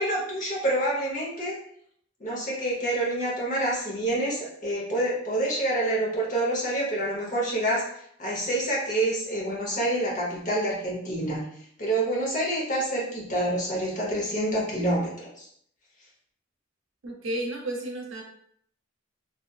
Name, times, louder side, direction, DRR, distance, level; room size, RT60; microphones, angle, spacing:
voice 1, 0.0-1.6 2.2-7.9 8.2-15.5, right 1 dB, 40° left, -4 dB, 0.8 m, -27 dB
voice 2, 17.0-18.2, right 1 dB, 65° right, 0 dB, 0.6 m, -32 dB
2.6 x 2.3 x 2.3 m, 0.66 s
head